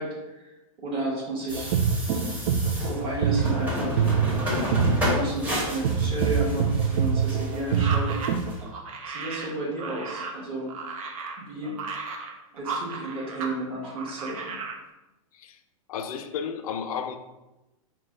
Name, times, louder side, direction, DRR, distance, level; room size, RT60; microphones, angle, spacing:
voice 1, 0.0-1.8 2.8-4.1 4.5-4.8 5.0-8.2 9.0-10.7 11.4-11.8 12.5-14.6, right 2 dB, 30° right, -3 dB, 1.2 m, -32 dB
sound 1, 1.5-8.6, left 1 dB, 10° right, 1.0 m, -31 dB
sound 2, 1.5-8.5, right 7 dB, 55° right, 0.4 m, -25 dB
sound 3, 7.7-13.5 13.8-14.8, right 4 dB, 70° right, 0.8 m, -35 dB
voice 2, 15.9-17.2, left 7 dB, 80° left, 8 dB, 0.4 m, -32 dB
4.2 x 2.2 x 3.7 m, 1.0 s
supercardioid pair, 145°, 18 cm